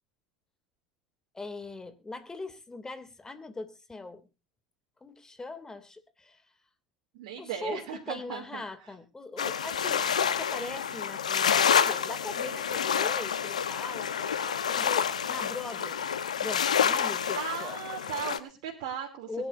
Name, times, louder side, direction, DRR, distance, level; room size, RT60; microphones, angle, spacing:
voice 1, 1.3-4.3 5.0-6.4 7.4-16.0 16.4-17.8 19.3-19.5, left 3 dB, 15° left, 11 dB, 2.7 m, -41 dB
voice 2, 7.1-8.6 17.3-19.5, right 9 dB, 70° right, -1 dB, 3.0 m, -37 dB
sound 1, 9.4-18.4, left 7 dB, 90° left, 1.1 m, -28 dB
22.5 x 11.0 x 2.7 m, 0.30 s
hypercardioid pair, 75°, 4 cm